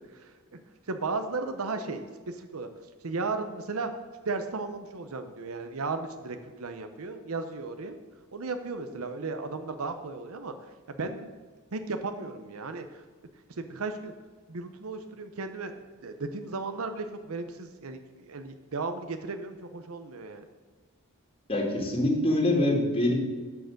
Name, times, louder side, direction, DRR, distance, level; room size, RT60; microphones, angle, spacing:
voice 1, 0.1-0.6 0.9-2.7 3.0-3.9 4.2-8.0 8.3-10.5 10.9-11.3 11.7-13.0 13.6-14.1 14.5-15.7 16.0-18.0 18.3-20.5, right 3 dB, 80° right, 8 dB, 0.8 m, -35 dB
voice 2, 21.5-23.1, left 1 dB, 25° left, 0 dB, 2.1 m, -24 dB
11.5 x 4.8 x 7.7 m, 1.4 s
head